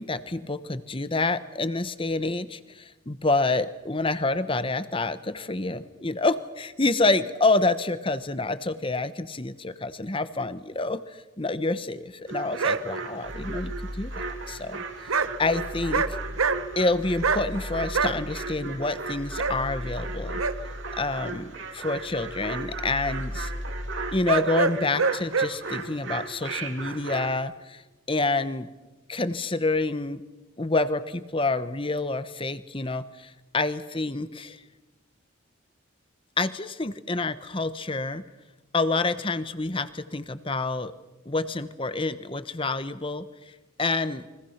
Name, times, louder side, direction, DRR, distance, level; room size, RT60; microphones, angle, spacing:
voice 1, 0.0-14.8 15.4-16.1 16.8-20.4 20.9-23.5 24.1-27.8 28.1-28.7 29.1-30.2 30.6-34.6 36.4-38.2 38.7-40.9 41.3-43.3 43.8-44.3, left 3 dB, 25° left, 13 dB, 1.0 m, -28 dB
sound 1, 12.3-27.3, right 4 dB, 60° right, 2.8 m, -37 dB
sound 2, 12.6-12.8 15.1-15.3 15.7-16.1 16.4-16.8 17.2-17.4 17.9-18.1 19.4-19.6 20.4-20.5 24.2-25.5, right 4 dB, 85° right, 1.1 m, -24 dB
sound 3, 13.2-14.7 15.1-21.6 21.9-24.2, left 1 dB, 10° left, 3.3 m, -38 dB
30.0 x 24.0 x 5.9 m, 1.1 s
head